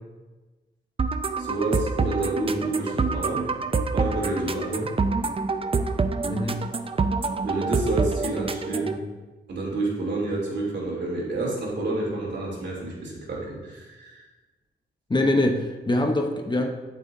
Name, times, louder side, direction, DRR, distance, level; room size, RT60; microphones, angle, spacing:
sound 1, 1.0-9.0, right 4 dB, 30° right, 0.5 m, -26 dB
voice 1, 1.4-3.5 3.9-4.9 7.4-9.0 9.5-14.2, right 2 dB, 65° right, -4 dB, 3.1 m, -29 dB
voice 2, 6.3-6.6 15.1-16.7, left 1 dB, 25° left, 3 dB, 0.8 m, -23 dB
12.5 x 7.4 x 2.7 m, 1.2 s
wide cardioid pair, 115°, 19 cm